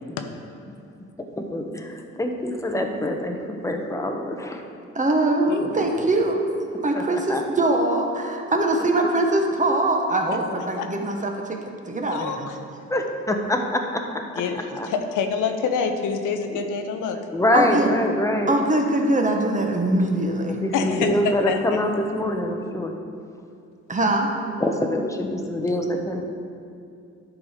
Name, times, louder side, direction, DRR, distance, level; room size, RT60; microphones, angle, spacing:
voice 1, 1.4-4.6 6.9-7.4 12.9-14.0 14.7-14.9 16.5-16.6 17.3-18.5 20.4-22.9 24.6-26.2, left 1 dB, 10° left, 3 dB, 0.9 m, -25 dB
voice 2, 4.9-6.5 6.7-12.5 17.5-17.9 18.5-21.1 23.9-24.4, right 2 dB, 25° right, 2 dB, 1.1 m, -23 dB
voice 3, 5.5-5.9 10.8-10.9 12.1-12.4 14.4-14.6 14.8-17.2 20.7-21.6, left 6 dB, 85° left, 6 dB, 0.9 m, -26 dB
11.0 x 4.8 x 5.0 m, 2.5 s
cardioid pair, 90°, 30 cm